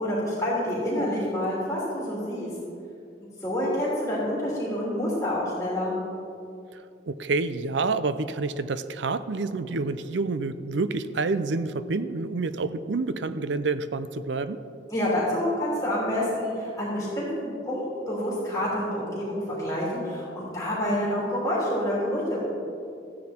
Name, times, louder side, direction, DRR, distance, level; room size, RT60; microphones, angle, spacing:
voice 1, 0.0-2.5 3.4-5.9 14.9-22.4, left 1 dB, 15° left, -8 dB, 3.2 m, -28 dB
voice 2, 6.7-14.6, right 3 dB, 80° right, 13 dB, 0.5 m, -28 dB
14.5 x 9.5 x 4.4 m, 2.6 s
head